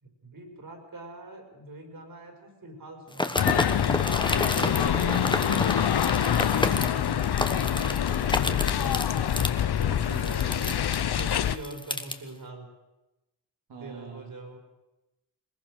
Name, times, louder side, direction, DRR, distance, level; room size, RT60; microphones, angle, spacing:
voice 1, 0.0-3.8 4.7-5.1 6.6-6.7 9.4-10.5 11.0-12.7 13.8-14.6, right 2 dB, 55° right, 4 dB, 5.3 m, -43 dB
sound 1, 3.1-12.2, left 2 dB, 10° left, 1.3 m, -31 dB
sound 2, 3.4-11.6, left 10 dB, 70° left, 0.9 m, -25 dB
voice 2, 4.5-10.9 13.7-14.4, right 3 dB, 75° right, -1 dB, 3.6 m, -43 dB
21.0 x 20.5 x 6.4 m, 1.0 s
wide cardioid pair, 100°, 40 cm